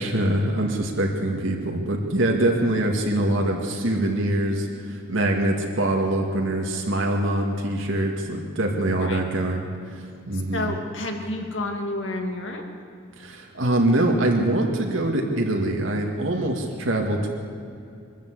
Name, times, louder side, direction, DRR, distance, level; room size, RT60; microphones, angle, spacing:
voice 1, 0.0-9.7 9.9-10.7 13.2-17.3, right 1 dB, 65° right, 1 dB, 2.1 m, -24 dB
voice 2, 10.3-12.6, left 2 dB, 60° left, 3 dB, 2.4 m, -30 dB
23.0 x 14.0 x 8.3 m, 2.4 s
head